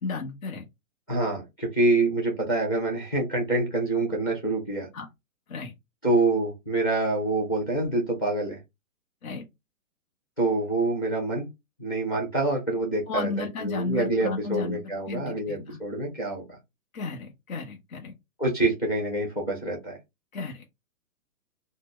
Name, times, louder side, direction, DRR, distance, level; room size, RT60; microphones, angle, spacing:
voice 1, 0.0-0.6 4.9-5.1 5.5-5.7 9.2-9.4 13.1-15.8 16.9-18.1 20.3-20.7, left 4 dB, 65° left, 1.0 m, -33 dB
voice 2, 1.1-4.9 6.0-8.6 10.4-11.5 11.8-16.4 18.4-20.0, right 2 dB, 15° left, 0.6 m, -26 dB
4.0 x 2.1 x 3.1 m
hypercardioid pair, 165°, 44 cm